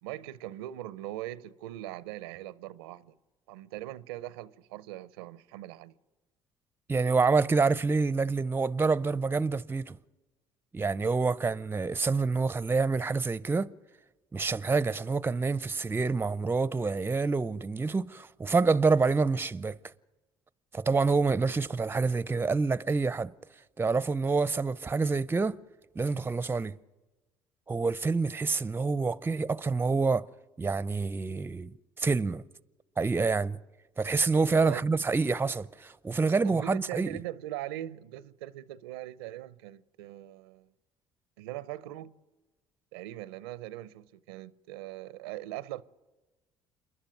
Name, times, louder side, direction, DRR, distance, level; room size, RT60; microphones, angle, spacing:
voice 1, 0.0-3.1 3.5-5.9 34.6-34.8 36.4-40.7 41.4-42.2 42.9-45.8, right 14 dB, 85° right, 0.6 m, -40 dB
voice 2, 6.9-10.0 10.7-13.7 14.3-19.8 20.7-23.3 23.8-25.6 26.0-26.7 27.7-30.3 30.6-31.7 32.0-32.4 33.0-33.6 34.0-37.1, right 4 dB, 20° right, 0.6 m, -27 dB
28.0 x 11.5 x 9.3 m
hypercardioid pair, 65°, 12 cm